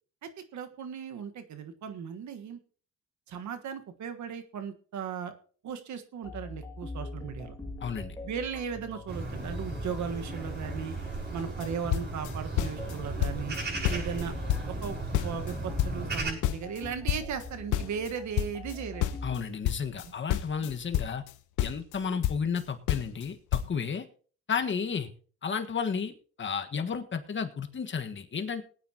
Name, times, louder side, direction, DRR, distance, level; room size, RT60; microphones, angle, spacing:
voice 1, 0.2-2.6 3.3-5.3 5.6-7.5 8.2-10.9 11.3-13.6 13.9-14.3 14.6-19.2 20.0-20.1 20.6-20.7, right 7 dB, 70° right, 8 dB, 1.5 m, -37 dB
sound 1, 6.2-19.4, left 2 dB, 10° left, 2.6 m, -43 dB
voice 2, 7.8-8.1 19.2-21.2 21.6-24.0 24.5-25.1 25.4-26.1 26.4-28.6, left 6 dB, 40° left, 6 dB, 1.5 m, -32 dB
sound 2, 9.1-16.3, right 3 dB, 35° right, 6.2 m, -36 dB
sound 3, 11.4-11.7 11.9-12.9 13.2-13.6 13.8-15.5 15.8-18.7 19.0-21.3 21.6-22.6 22.9-23.3 23.5-23.7, left 12 dB, 85° left, 0.9 m, -30 dB
21.0 x 9.2 x 2.9 m, 0.42 s
cardioid pair, 90°, 30 cm